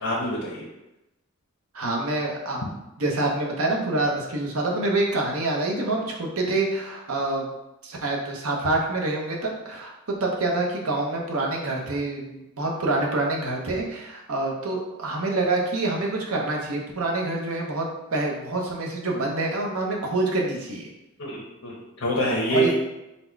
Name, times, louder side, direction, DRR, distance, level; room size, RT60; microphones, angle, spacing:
voice 1, 0.0-0.6 21.2-22.7, right 1 dB, 85° left, -5 dB, 0.9 m, -26 dB
voice 2, 1.7-2.6 3.0-7.5 7.8-9.9 10.2-20.9 22.5-22.7, right 2 dB, 75° right, -1 dB, 0.8 m, -26 dB
4.1 x 2.2 x 4.5 m, 0.93 s
head